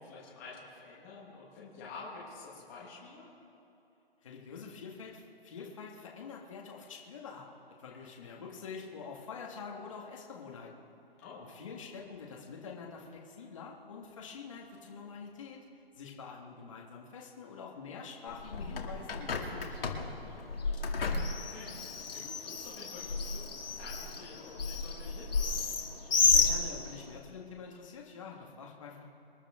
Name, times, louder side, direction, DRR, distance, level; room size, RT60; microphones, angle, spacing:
voice 1, 0.0-3.3 8.0-8.4 11.2-11.4 20.8-25.5, left 4 dB, 15° left, -7 dB, 1.6 m, -49 dB
voice 2, 4.2-7.5 7.8-10.7 11.5-15.6 16.0-20.2 26.3-29.1, left 5 dB, 30° left, -1 dB, 1.8 m, -46 dB
Bird, 18.3-27.2, left 4 dB, 65° left, 2.5 m, -32 dB
27.0 x 11.0 x 3.7 m, 2.8 s
hypercardioid pair, 175°, 31 cm